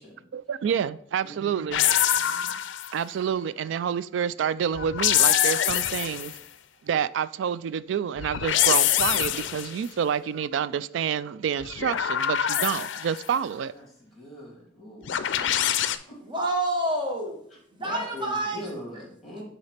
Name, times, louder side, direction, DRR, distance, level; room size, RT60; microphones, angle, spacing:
voice 1, 0.3-1.9 2.9-6.3 6.8-13.7, right 8 dB, 85° right, 0.3 m, -28 dB
voice 2, 1.2-1.6 2.1-2.5 13.7-15.7 16.1-16.2 17.5-19.4, left 1 dB, ahead, 3.1 m, -42 dB
sound 1, 1.7-3.0 4.7-6.4 8.2-9.8 11.6-13.2 15.1-16.0, left 11 dB, 80° left, 0.4 m, -24 dB
voice 3, 16.3-17.4 17.8-18.6, right 1 dB, 25° right, 1.1 m, -27 dB
9.6 x 4.0 x 3.3 m
head